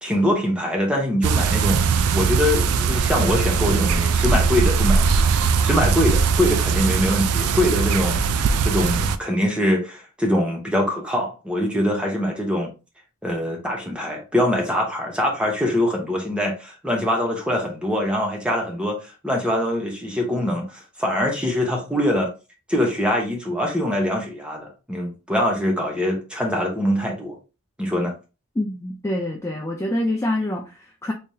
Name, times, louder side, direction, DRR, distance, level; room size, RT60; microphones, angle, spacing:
voice 1, 0.0-1.8 2.1-8.2 8.6-12.7 13.2-22.3 22.7-27.4 27.8-28.1, left 1 dB, 5° right, 0.9 m, -23 dB
sound 1, 1.2-9.2, right 5 dB, 85° right, 0.4 m, -20 dB
voice 2, 28.6-31.1, left 1 dB, 15° left, 0.3 m, -26 dB
3.3 x 3.3 x 2.7 m
head